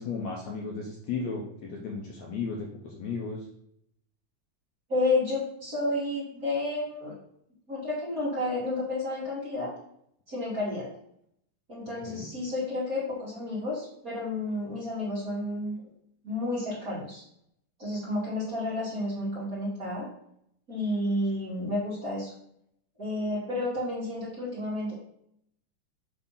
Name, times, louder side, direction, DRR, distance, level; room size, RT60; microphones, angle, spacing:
voice 1, 0.0-3.4 12.0-12.3, left 4 dB, 70° left, -1 dB, 1.8 m, -35 dB
voice 2, 4.9-7.1 7.7-9.7 10.3-10.9 11.7-15.7 16.2-17.2 17.8-20.1 20.7-22.3 23.0-24.9, left 2 dB, 30° right, -7 dB, 1.8 m, -31 dB
6.9 x 3.4 x 5.6 m, 0.72 s
omnidirectional pair, 3.9 m